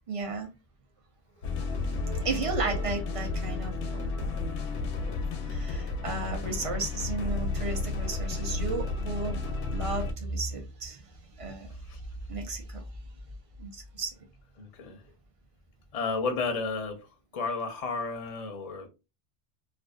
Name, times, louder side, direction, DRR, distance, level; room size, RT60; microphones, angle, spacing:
voice 1, 0.1-0.5 2.0-4.1 5.0-5.2 5.5-9.4 9.7-11.1 11.4-11.7 12.3-12.8 13.6-14.1, right 3 dB, 45° right, 0.4 m, -34 dB
sound 1, 1.4-10.1, left 3 dB, 75° left, 0.8 m, -32 dB
voice 2, 11.7-12.0 14.6-15.0 15.9-18.9, left 4 dB, 45° left, 0.5 m, -33 dB
2.5 x 2.3 x 2.2 m
omnidirectional pair, 1.2 m